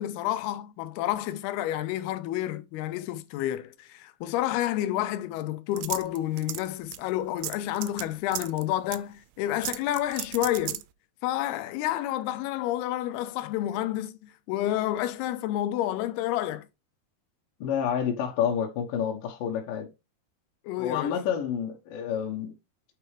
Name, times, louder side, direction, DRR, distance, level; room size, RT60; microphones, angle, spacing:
voice 1, 0.0-10.8 11.2-16.7 20.7-21.2, left 13 dB, 85° left, 2.7 m, -29 dB
sound 1, 5.8-6.7 6.9-7.0 7.4-8.0 8.3-8.6 8.9-9.0 9.6-10.8, right 16 dB, 85° right, 2.5 m, -34 dB
voice 2, 17.6-19.9 20.8-22.5, left 8 dB, 70° left, 2.6 m, -29 dB
8.9 x 4.5 x 3.2 m
omnidirectional pair, 4.5 m